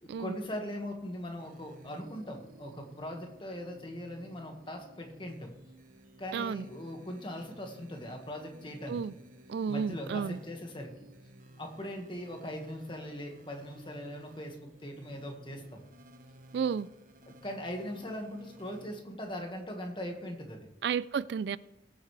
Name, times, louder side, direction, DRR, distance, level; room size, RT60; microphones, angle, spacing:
voice 1, 0.0-5.5 6.2-9.0 9.7-10.9 11.6-15.8 17.3-20.7, equal, 25° left, 1.7 m, -40 dB
sound 1, 1.4-19.0, right 1 dB, 45° right, 0.8 m, -55 dB
voice 2, 6.3-6.7 8.9-9.1 9.5-10.4 16.5-16.9 20.8-21.6, right 6 dB, 65° right, 0.3 m, -32 dB
18.5 x 7.9 x 3.3 m
head